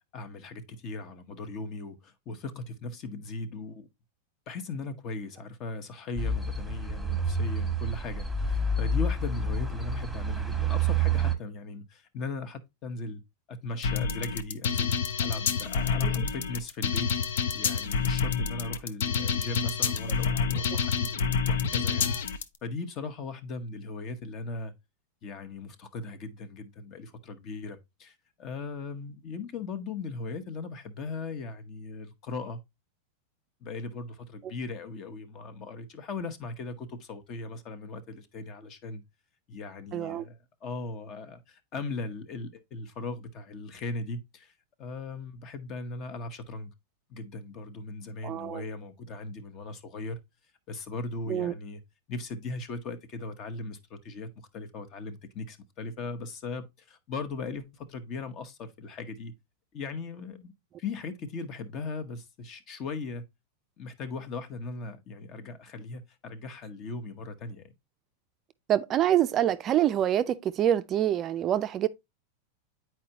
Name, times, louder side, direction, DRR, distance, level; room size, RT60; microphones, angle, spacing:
voice 1, 0.1-3.9 4.5-13.2 13.5-17.1 17.5-24.7 25.2-32.6 33.6-39.0 39.5-44.5 44.8-46.7 47.1-50.2 50.7-51.8 52.1-59.3 59.7-60.5 60.8-63.2 63.8-67.7, left 3 dB, 40° left, 0.9 m, -38 dB
sound 1, 6.2-11.3, right 3 dB, ahead, 1.2 m, -28 dB
sound 2, 13.8-22.4, left 6 dB, 80° left, 0.6 m, -28 dB
voice 2, 39.9-40.3 48.2-48.6 51.3-51.5 68.7-71.9, right 11 dB, 35° right, 0.4 m, -26 dB
8.4 x 4.5 x 2.8 m
supercardioid pair, 130°, 0 cm